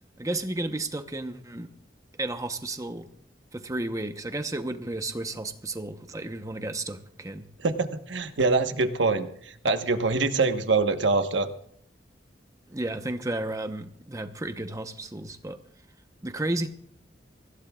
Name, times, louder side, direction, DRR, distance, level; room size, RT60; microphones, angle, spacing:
voice 1, 0.2-1.7 2.2-3.1 3.5-7.5 12.7-15.6 16.2-16.7, right 2 dB, 20° right, 7 dB, 0.9 m, -32 dB
voice 2, 7.6-9.3 9.6-11.5, right 3 dB, 90° right, 7 dB, 1.2 m, -24 dB
24.5 x 16.0 x 2.4 m, 0.65 s
head